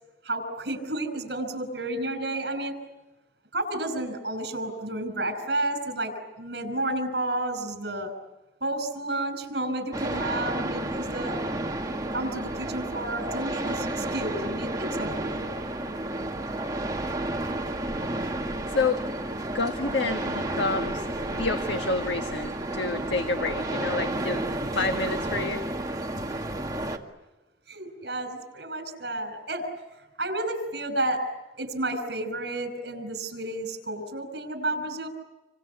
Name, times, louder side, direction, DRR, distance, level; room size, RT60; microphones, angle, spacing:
voice 1, 0.2-2.8 3.5-8.1 8.6-11.4 12.1-15.5 27.7-31.2 31.6-35.1, right 1 dB, 65° right, 10 dB, 5.8 m, -31 dB
sound 1, 9.9-27.0, right 1 dB, 20° right, 2.0 m, -31 dB
voice 2, 18.4-19.0 19.5-24.4 24.7-25.6, left 3 dB, 75° left, 5 dB, 1.6 m, -29 dB
28.0 x 25.5 x 8.2 m, 1.1 s
head